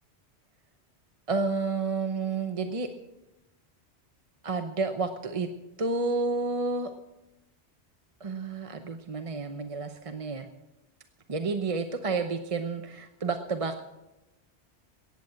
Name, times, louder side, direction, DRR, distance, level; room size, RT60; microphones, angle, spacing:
voice 1, 1.3-2.9 4.4-5.5 5.8-6.9 8.2-10.5 11.3-13.8, right 4 dB, 35° right, 7 dB, 0.7 m, -30 dB
14.5 x 9.3 x 7.4 m, 0.98 s
omnidirectional pair, 1.1 m